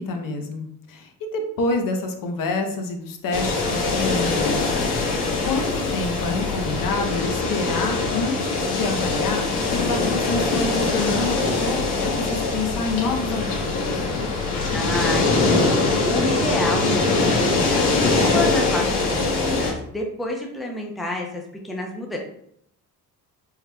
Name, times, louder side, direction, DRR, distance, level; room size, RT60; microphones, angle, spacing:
voice 1, 0.0-4.9 5.4-14.1, left 3 dB, 55° left, 4 dB, 0.8 m, -28 dB
sound 1, 3.3-19.7, left 3 dB, 75° left, 1.4 m, -22 dB
voice 2, 14.7-15.8 16.1-22.2, left 1 dB, ahead, 0 dB, 0.6 m, -29 dB
4.7 x 3.3 x 2.2 m, 0.72 s
cardioid pair, 105°, 39 cm